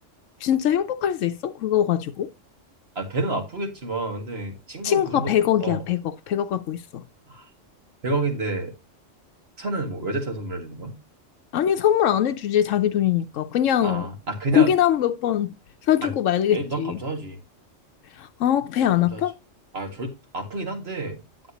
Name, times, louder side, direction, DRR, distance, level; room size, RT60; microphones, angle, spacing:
voice 1, 0.4-2.3 4.8-7.0 11.5-14.1 14.5-15.6 15.9-17.0 18.2-19.3, left 10 dB, 85° left, 1.1 m, -22 dB
voice 2, 3.0-5.8 7.3-7.5 8.0-8.7 9.6-11.0 13.8-14.7 16.0-16.1 16.5-17.4 19.0-19.2 19.7-21.2, right 2 dB, 55° right, 2.3 m, -29 dB
9.7 x 7.7 x 2.9 m
omnidirectional pair, 1.3 m